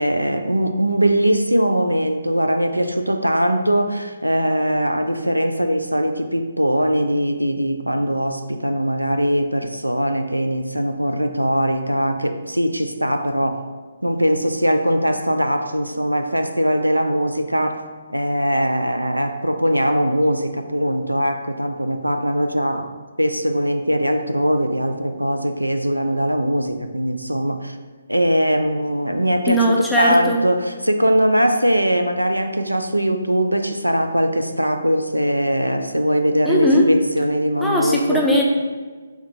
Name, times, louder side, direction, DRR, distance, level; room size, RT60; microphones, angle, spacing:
voice 1, 0.0-13.6 14.0-17.8 18.1-22.9 23.2-27.8 28.1-38.3, equal, 90° right, 7 dB, 0.3 m, -21 dB
voice 2, 29.5-30.4 36.5-36.9 37.6-38.4, equal, 5° left, -3 dB, 0.5 m, -18 dB
3.5 x 2.7 x 4.6 m, 1.4 s
figure-of-eight pair, 135°, 0 cm